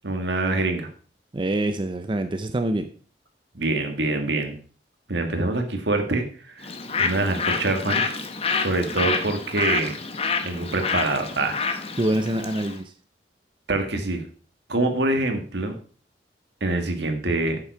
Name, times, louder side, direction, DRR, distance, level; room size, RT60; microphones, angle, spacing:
voice 1, 0.0-0.9 3.5-4.5 5.1-6.7 7.0-8.0 8.6-9.9 10.4-11.6 13.7-14.2 14.7-15.7 16.6-17.6, right 2 dB, 75° right, 5 dB, 1.7 m, -25 dB
voice 2, 1.3-2.9 12.0-12.9, right 1 dB, 30° right, 8 dB, 0.6 m, -25 dB
Bird, 6.6-12.8, left 4 dB, 35° left, 1.0 m, -28 dB
8.6 x 7.2 x 4.7 m, 0.40 s
head